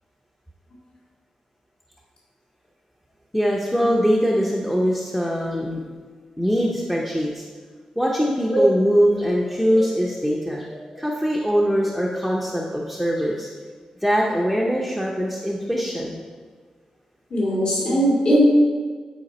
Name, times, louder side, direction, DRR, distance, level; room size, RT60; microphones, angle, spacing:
voice 1, 3.3-5.8 6.4-7.4 8.0-10.7 11.0-13.5 14.0-16.2, equal, 5° left, -3 dB, 0.7 m, -22 dB
voice 2, 17.3-18.4, equal, 50° left, -5 dB, 2.0 m, -20 dB
9.3 x 4.9 x 4.2 m, 1.5 s
wide cardioid pair, 140°, 2 cm